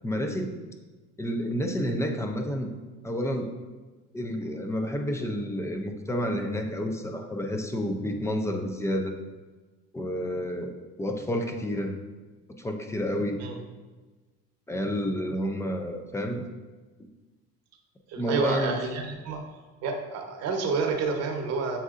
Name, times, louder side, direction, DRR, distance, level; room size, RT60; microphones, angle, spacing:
voice 1, 0.0-0.6 1.2-2.7 3.0-3.5 4.1-9.1 9.9-12.0 12.6-13.4 14.7-16.5 18.2-18.8, equal, 10° left, 4 dB, 0.4 m, -30 dB
voice 2, 18.1-19.4 19.8-21.8, right 4 dB, 55° right, 3 dB, 0.8 m, -29 dB
7.1 x 2.6 x 2.4 m, 1.3 s
supercardioid pair, 110°, 30 cm